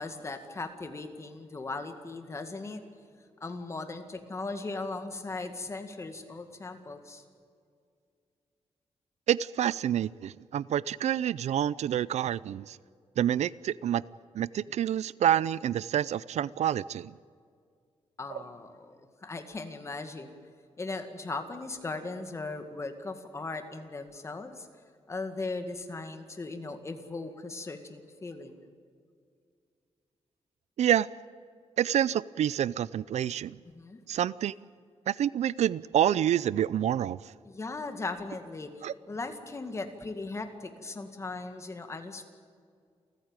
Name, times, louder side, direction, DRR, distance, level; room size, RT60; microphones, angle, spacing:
voice 1, 0.0-2.8 3.4-7.2 18.2-20.3 20.8-24.7 25.1-28.6 33.7-34.0 37.4-42.2, left 3 dB, 25° left, 7 dB, 2.0 m, -38 dB
voice 2, 9.3-12.8 13.2-14.0 14.3-17.1 18.3-18.4 30.8-31.1 31.8-33.6 34.1-34.5 35.1-37.2 38.8-38.9, right 10 dB, 85° right, 20 dB, 0.5 m, -28 dB
29.0 x 14.5 x 9.1 m, 2.3 s
wide cardioid pair, 175°, 11 cm